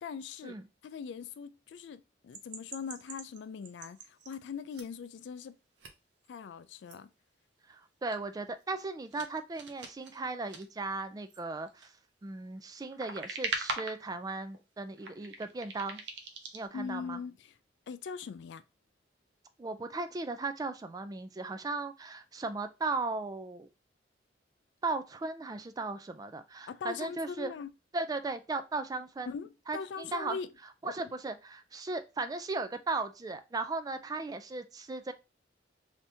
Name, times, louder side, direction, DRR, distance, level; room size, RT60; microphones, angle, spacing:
voice 1, 0.0-0.6 0.8-5.5 6.3-7.1 16.7-17.6 17.9-18.6 26.7-27.7 29.3-30.5 30.8-30.9, left 6 dB, 70° left, 0.3 m, -41 dB
sound 1, 2.3-4.4 4.7-5.1 5.8-5.9 6.3-6.4 6.9-7.0 8.0-8.2 8.6-8.8 9.1-10.7 11.3-11.9 12.6-14.0 14.4-14.6 14.9-16.7, right 3 dB, 70° right, 0.7 m, -41 dB
voice 2, 7.7-11.9 12.2-16.0 16.5-17.2 19.6-23.7 24.8-27.5 27.9-29.3 29.7-30.4 30.8-35.1, right 3 dB, 20° right, 0.3 m, -37 dB
3.4 x 2.7 x 2.6 m
head